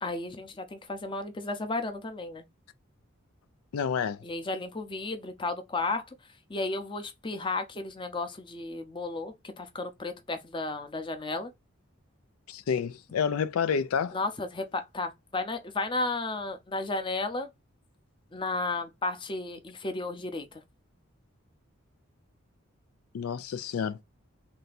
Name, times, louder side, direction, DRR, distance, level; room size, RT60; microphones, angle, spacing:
voice 1, 0.0-2.4 4.2-6.1 6.5-11.5 14.1-17.5 18.3-20.6, left 3 dB, 25° left, 0.6 m, -33 dB
voice 2, 3.7-4.2 12.5-14.2 23.1-24.0, left 6 dB, 90° left, 0.4 m, -29 dB
3.3 x 2.7 x 4.1 m
head